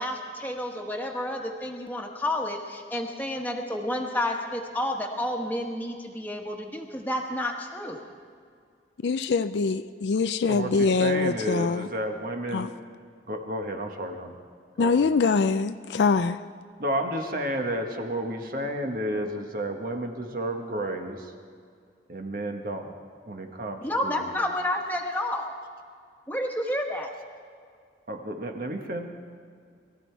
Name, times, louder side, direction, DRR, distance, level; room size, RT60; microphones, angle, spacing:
voice 1, 0.0-8.0 23.8-25.5 26.3-27.1, left 1 dB, 10° left, 1 dB, 1.4 m, -30 dB
voice 2, 9.0-11.9 12.5-12.7 14.8-16.4, left 4 dB, 80° left, 11 dB, 0.4 m, -24 dB
voice 3, 10.5-12.7 13.3-14.3 14.8-15.0 16.8-21.3 22.1-23.0 23.3-24.3 28.1-29.1, right 1 dB, 50° right, 4 dB, 1.4 m, -31 dB
22.5 x 13.5 x 4.6 m, 2.2 s
head